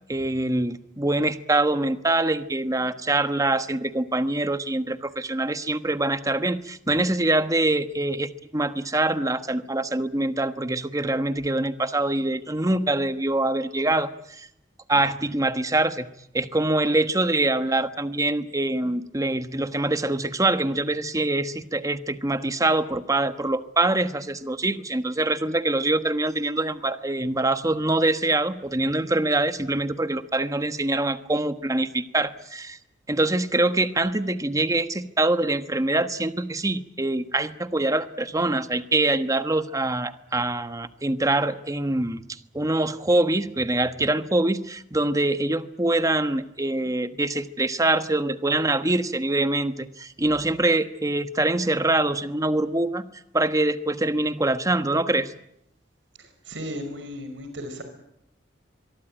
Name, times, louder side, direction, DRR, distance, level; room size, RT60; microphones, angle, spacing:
voice 1, 0.1-14.5 14.9-16.1 16.3-32.8 33.1-42.2 42.5-53.0 53.3-55.3, right 2 dB, 20° right, 10 dB, 1.3 m, -24 dB
voice 2, 56.2-57.8, equal, 85° right, 7 dB, 5.6 m, -35 dB
24.5 x 23.0 x 9.1 m, 0.78 s
head